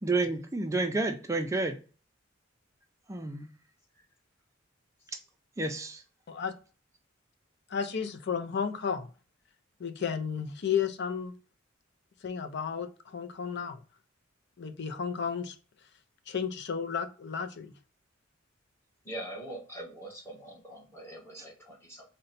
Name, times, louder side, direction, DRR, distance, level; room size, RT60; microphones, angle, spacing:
voice 1, 0.0-1.8 3.1-3.5 5.6-6.0, right 2 dB, 15° right, 0.4 m, -30 dB
voice 2, 7.7-9.1 9.8-11.3 12.2-13.8 14.6-15.6 16.3-17.7, left 7 dB, 55° left, 0.5 m, -33 dB
voice 3, 19.0-22.0, right 1 dB, 15° left, 1.1 m, -43 dB
3.8 x 2.2 x 4.0 m
head